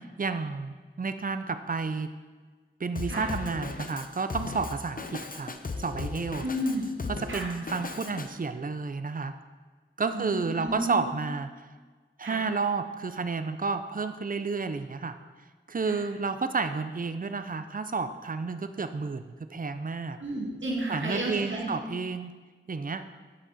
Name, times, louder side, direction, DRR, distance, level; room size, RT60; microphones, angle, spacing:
voice 1, 0.2-2.1 2.8-5.5 5.8-6.4 7.1-9.4 10.0-11.5 12.2-15.2 15.7-20.2 20.9-22.3 22.7-23.1, right 4 dB, 45° right, 10 dB, 0.6 m, -31 dB
Drum kit, 3.0-8.3, left 3 dB, 45° left, 0.7 m, -37 dB
voice 2, 6.4-6.9 7.3-7.5 10.1-11.0 12.2-12.4 15.9-16.0 20.2-21.7, right 1 dB, 80° right, -3 dB, 2.2 m, -32 dB
11.0 x 6.4 x 4.2 m, 1.4 s
wide cardioid pair, 55°, 20 cm